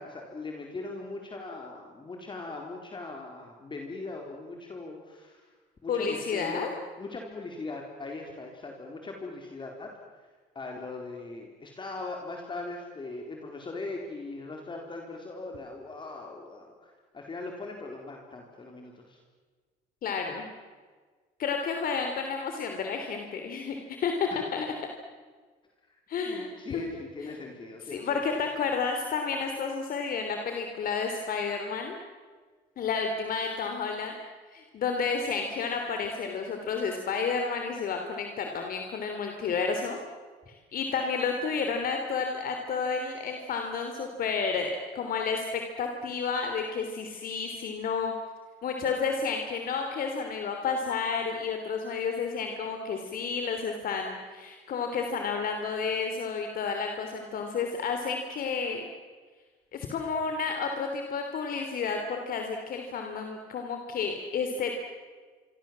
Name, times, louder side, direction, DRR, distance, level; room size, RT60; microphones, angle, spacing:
voice 1, 0.0-5.4 5.8-6.7 7.0-9.9 10.5-19.2 24.3-24.4 26.3-28.4, left 3 dB, 30° left, 1 dB, 4.1 m, -40 dB
voice 2, 5.9-6.7 20.0-20.5 21.4-24.7 26.1-26.8 27.2-27.4 27.9-32.0 32.8-34.1 34.5-40.0 40.5-48.1 48.6-58.8 59.7-64.7, left 5 dB, 60° left, 4 dB, 3.3 m, -31 dB
27.0 x 24.5 x 7.6 m, 1.5 s
cardioid pair, 110°, 17 cm